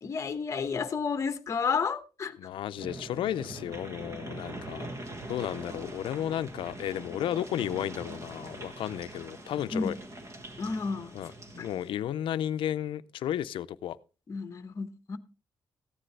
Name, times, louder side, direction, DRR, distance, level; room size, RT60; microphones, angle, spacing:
voice 1, 0.0-2.4 9.7-10.0 10.6-11.1 14.3-15.2, left 5 dB, 35° left, 0.9 m, -31 dB
voice 2, 2.4-4.9 5.3-10.0 11.1-14.0, left 11 dB, 90° left, 0.5 m, -33 dB
sound 1, 2.8-11.9, right 1 dB, 35° right, 1.5 m, -43 dB
15.0 x 10.0 x 3.3 m
wide cardioid pair, 160°, 9 cm